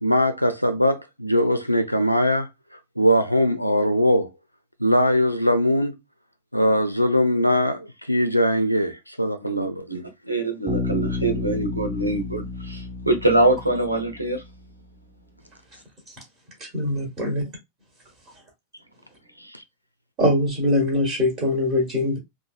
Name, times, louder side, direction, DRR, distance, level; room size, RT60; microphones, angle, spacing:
voice 1, 0.0-2.5 3.0-4.3 4.8-6.0 6.5-10.0 19.4-19.6, equal, 90° left, 0.4 m, -21 dB
voice 2, 9.4-10.0 10.3-14.4, right 2 dB, 85° right, 0.8 m, -24 dB
Bass guitar, 10.7-14.4, left 3 dB, ahead, 1.0 m, -31 dB
voice 3, 16.6-17.4 20.2-22.2, left 1 dB, 30° right, 1.1 m, -22 dB
3.1 x 2.2 x 2.3 m
figure-of-eight pair, 90°, 0 cm